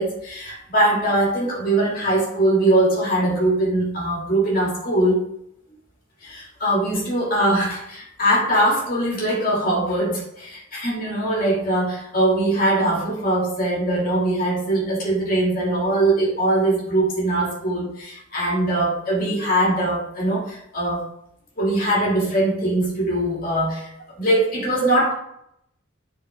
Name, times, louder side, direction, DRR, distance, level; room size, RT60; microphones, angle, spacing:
voice 1, 0.0-5.2 6.2-21.1 21.6-25.1, right 1 dB, 45° left, -3 dB, 2.4 m, -21 dB
10.5 x 4.6 x 3.6 m, 0.75 s
head